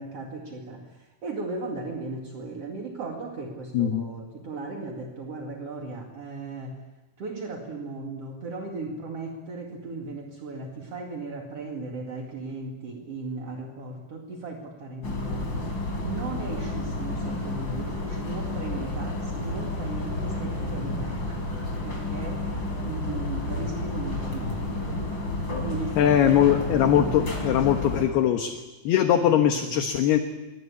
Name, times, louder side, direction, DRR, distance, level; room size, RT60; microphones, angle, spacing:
voice 1, 0.0-6.8 7.2-15.8 16.0-24.7 25.6-28.3 29.2-29.3 29.5-29.8, right 3 dB, 45° right, 1 dB, 2.2 m, -37 dB
voice 2, 3.7-4.1 26.0-28.6 28.8-30.2, left 10 dB, 65° left, 5 dB, 2.9 m, -21 dB
sound 1, 15.0-28.0, left 2 dB, 25° left, 4.9 m, -31 dB
26.5 x 23.5 x 8.5 m, 1.1 s
omnidirectional pair, 5.9 m